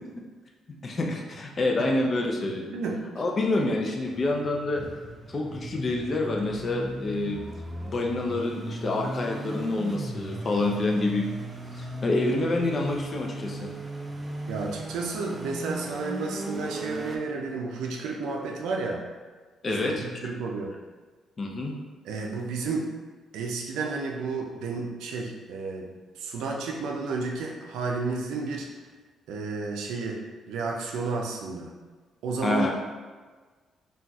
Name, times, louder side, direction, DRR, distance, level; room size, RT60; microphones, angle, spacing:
voice 1, 0.8-2.7 3.2-4.8 5.3-7.4 7.8-11.3 11.8-13.7 19.6-20.0 21.4-21.7 32.4-32.7, left 2 dB, 40° left, 0 dB, 0.5 m, -27 dB
voice 2, 2.4-3.0 14.5-19.1 19.7-20.7 22.1-22.9 23.3-28.7 29.3-31.7 32.2-32.7, right 4 dB, 85° right, 1 dB, 0.4 m, -32 dB
sound 1, 4.0-17.2, right 1 dB, 20° right, 0.4 m, -37 dB
3.9 x 2.4 x 2.3 m, 1.4 s
cardioid pair, 90°, 0 cm